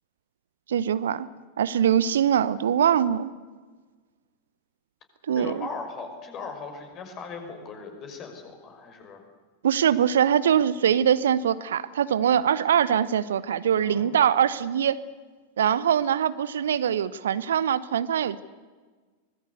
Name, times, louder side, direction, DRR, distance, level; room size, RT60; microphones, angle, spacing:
voice 1, 0.7-1.3 1.6-3.3 5.3-5.7 9.6-15.0 15.6-18.4, right 9 dB, 65° right, 17 dB, 0.9 m, -23 dB
voice 2, 5.3-9.2 13.8-14.1, left 4 dB, 30° left, 5 dB, 5.9 m, -38 dB
24.5 x 20.5 x 8.2 m, 1.4 s
figure-of-eight pair, 90°, 0 cm